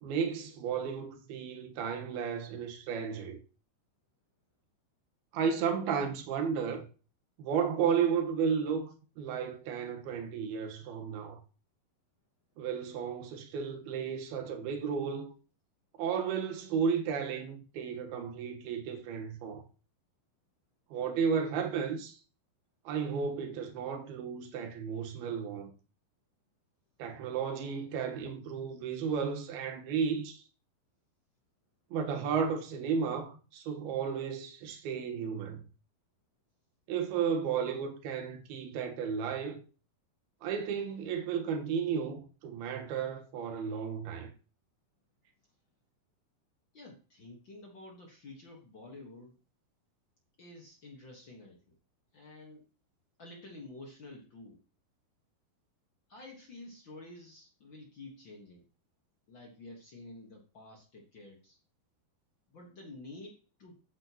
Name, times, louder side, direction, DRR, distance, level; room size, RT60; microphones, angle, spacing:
voice 1, 0.0-3.4 5.3-6.9 7.4-11.4 12.6-15.3 16.0-19.6 20.9-22.2 22.8-25.7 27.0-30.4 31.9-35.6 36.9-39.6 40.4-44.3, right 6 dB, 75° right, 3.1 m, -33 dB
voice 2, 46.7-49.4 50.4-51.7 52.1-52.6 53.2-54.6 56.1-58.6 59.3-61.6 62.5-63.8, left 2 dB, 60° left, 1.2 m, -50 dB
12.5 x 8.8 x 3.0 m
omnidirectional pair, 4.6 m